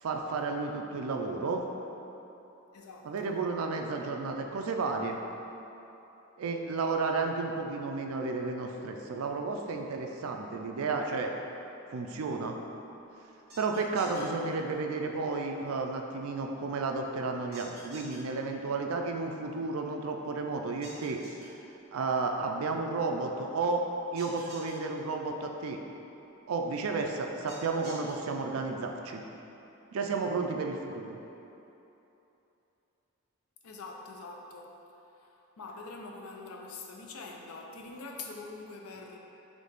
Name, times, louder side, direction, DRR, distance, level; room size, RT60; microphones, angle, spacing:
voice 1, 0.0-1.6 3.0-5.2 6.4-11.3 11.9-12.6 13.6-21.2 21.9-23.8 24.1-25.8 26.5-29.2 29.9-31.2, right 3 dB, 75° right, 3 dB, 0.4 m, -32 dB
voice 2, 2.7-3.4 33.6-34.7 35.2-39.2, left 3 dB, 85° left, 1 dB, 0.5 m, -44 dB
sound 1, 13.5-14.2 17.5-18.2 20.8-21.5 24.2-24.7 27.5-28.1, right 2 dB, 50° right, 1.2 m, -48 dB
4.0 x 3.2 x 3.5 m, 3.0 s
head